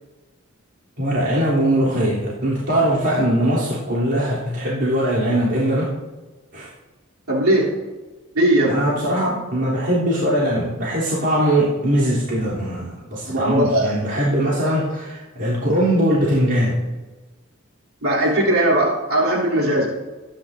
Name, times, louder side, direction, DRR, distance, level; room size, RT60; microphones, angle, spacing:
voice 1, 1.0-5.9 6.5-6.7 8.7-16.8, right 1 dB, 55° right, -9 dB, 3.4 m, -21 dB
voice 2, 7.3-7.8 8.3-8.9 13.3-13.9 18.0-20.0, right 1 dB, 85° right, -5 dB, 3.4 m, -19 dB
22.5 x 10.5 x 2.7 m, 1.2 s
head